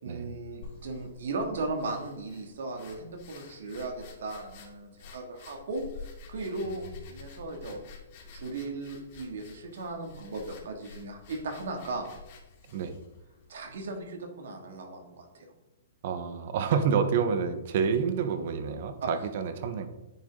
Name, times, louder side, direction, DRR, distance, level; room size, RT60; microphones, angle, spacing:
voice 1, 0.0-5.8 6.3-7.8 8.3-12.1 13.5-15.5 19.0-19.1, right 3 dB, 75° right, 3 dB, 2.6 m, -37 dB
sound 1, 0.6-14.0, left 5 dB, 45° left, 2.8 m, -50 dB
voice 2, 16.0-19.9, right 6 dB, 55° right, 9 dB, 1.4 m, -28 dB
9.9 x 7.9 x 4.0 m, 1.0 s
hypercardioid pair, 145°, 0 cm